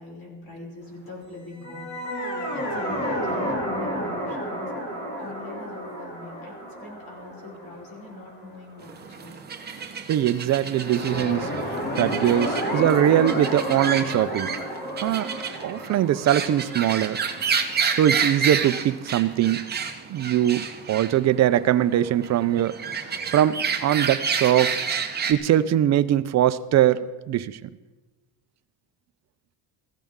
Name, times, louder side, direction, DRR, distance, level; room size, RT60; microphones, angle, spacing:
voice 1, 0.0-4.6 5.2-9.4, left 2 dB, 50° left, -3 dB, 6.1 m, -42 dB
sound 1, 1.5-8.8 10.6-18.4, equal, 20° left, 2.7 m, -31 dB
sound 2, 8.8-25.3, right 6 dB, 20° right, 0.9 m, -30 dB
voice 2, 10.1-11.5 12.0-14.5 15.0-15.4 15.6-17.2 17.9-19.6 20.1-22.8 23.1-24.8 25.3-27.7, right 11 dB, 40° right, 14 dB, 0.4 m, -22 dB
19.0 x 15.5 x 3.7 m, 1.2 s
cardioid pair, 165°, 45 cm